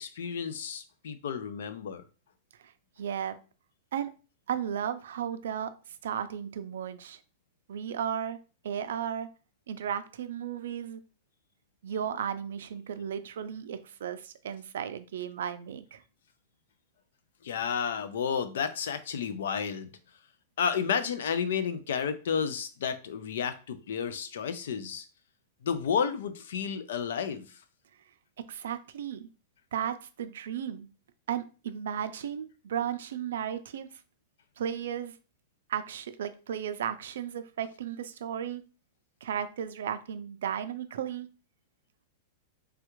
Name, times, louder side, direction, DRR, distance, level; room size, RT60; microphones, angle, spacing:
voice 1, 0.0-2.0 17.4-19.9 20.6-25.0 25.6-27.6, left 7 dB, 80° left, 12 dB, 0.4 m, -31 dB
voice 2, 3.0-3.4 3.9-4.1 4.5-5.7 6.0-7.2 7.7-8.4 8.6-9.3 9.7-11.0 11.8-16.0 28.4-29.3 29.7-30.9 31.3-33.9 34.6-35.1 35.7-38.6 39.2-41.3, right 9 dB, 85° right, 11 dB, 0.4 m, -34 dB
3.3 x 2.3 x 3.0 m, 0.34 s
supercardioid pair, 165°, 0 cm